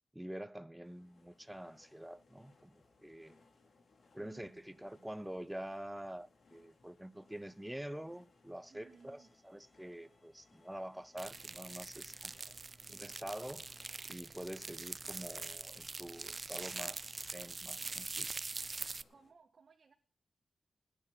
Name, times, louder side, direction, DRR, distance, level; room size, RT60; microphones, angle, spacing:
voice 1, 0.1-3.4 4.1-12.5 12.9-18.3, right 1 dB, 5° right, 0.9 m, -47 dB
sound 1, 0.8-19.3, left 3 dB, 60° left, 2.8 m, -68 dB
voice 2, 4.2-4.6 5.0-5.2 8.7-9.3 19.1-19.9, right 4 dB, 55° right, 1.8 m, -61 dB
Bowed string instrument, 8.6-18.6, left 1 dB, 15° left, 5.4 m, -78 dB
sound 2, 11.2-19.0, right 3 dB, 35° right, 0.5 m, -44 dB
20.5 x 10.0 x 4.1 m
wide cardioid pair, 95°, 0 cm